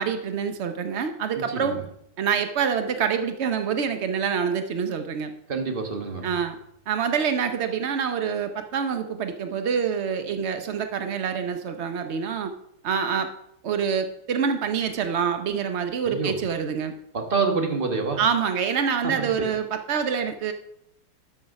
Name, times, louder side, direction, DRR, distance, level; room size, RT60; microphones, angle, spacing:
voice 1, 0.0-1.8 2.2-5.3 6.2-6.6 6.9-12.5 12.8-13.3 13.6-16.9 18.2-20.5, right 6 dB, 90° right, 8 dB, 0.6 m, -26 dB
voice 2, 1.4-1.8 5.5-6.3 16.0-16.4 17.1-18.2 19.0-19.5, right 4 dB, 30° right, 4 dB, 1.2 m, -27 dB
12.5 x 6.4 x 5.2 m, 0.75 s
omnidirectional pair, 2.2 m